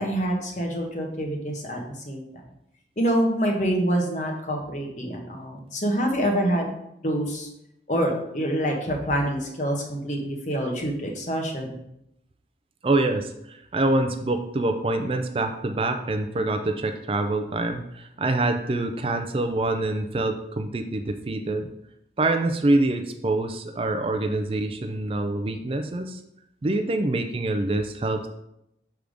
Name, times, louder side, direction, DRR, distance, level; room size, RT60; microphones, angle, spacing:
voice 1, 0.0-1.8 2.0-2.4 3.0-6.7 7.0-7.5 7.9-11.7, equal, 45° left, 1 dB, 1.0 m, -26 dB
voice 2, 12.8-21.7 22.2-26.2 26.6-28.3, right 2 dB, 30° right, 5 dB, 0.4 m, -25 dB
6.3 x 3.5 x 5.0 m, 0.81 s
head